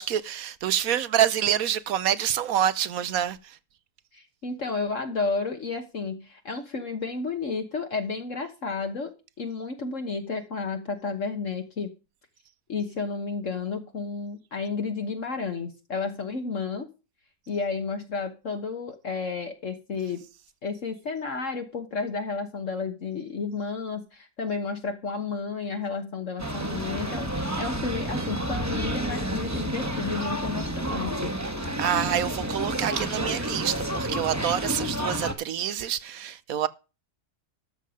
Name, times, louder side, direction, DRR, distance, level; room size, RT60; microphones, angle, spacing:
voice 1, 0.0-3.6 31.8-36.7, right 10 dB, 70° right, 1.2 m, -27 dB
voice 2, 4.1-9.1 9.4-11.9 12.7-16.9 17.5-20.2 20.6-31.3, left 4 dB, 55° left, 1.6 m, -32 dB
sound 1, 26.4-35.3, right 1 dB, 10° right, 1.5 m, -30 dB
13.0 x 7.5 x 5.0 m
omnidirectional pair, 1.6 m